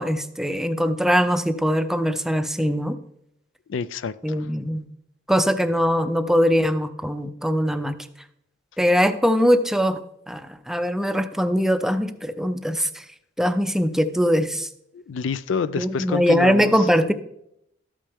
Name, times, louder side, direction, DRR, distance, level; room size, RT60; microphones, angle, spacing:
voice 1, 0.0-3.0 4.2-4.8 5.3-8.0 8.8-10.0 10.3-13.0 13.4-14.7 15.8-17.1, equal, ahead, 0.4 m, -21 dB
voice 2, 3.7-4.5 14.9-16.9, left 5 dB, 80° left, 0.4 m, -28 dB
12.5 x 8.5 x 3.5 m
head